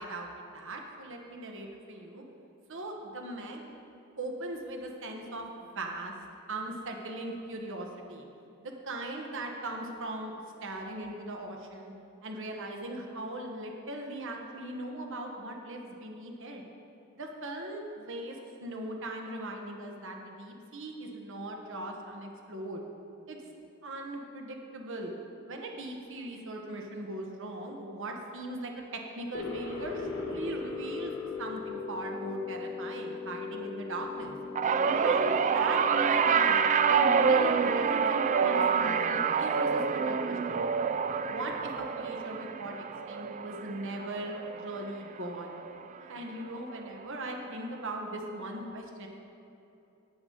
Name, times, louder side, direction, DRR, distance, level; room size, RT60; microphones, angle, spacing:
voice 1, 0.0-2.2 2.7-3.7 4.2-6.1 6.5-8.3 8.6-10.3 10.6-11.9 12.2-16.6 17.2-22.8 23.3-23.4 23.8-25.1 25.5-34.4 35.0-36.6 36.9-40.6 41.3-42.7 43.1-45.6 46.1-49.1, right 1 dB, 60° right, 2 dB, 1.2 m, -39 dB
sound 1, 29.3-40.2, left 4 dB, 75° left, 1.8 m, -39 dB
sound 2, 34.6-45.0 45.3-45.7 46.9-47.0, right 6 dB, 35° right, 0.3 m, -27 dB
11.5 x 9.4 x 3.9 m, 2.7 s
head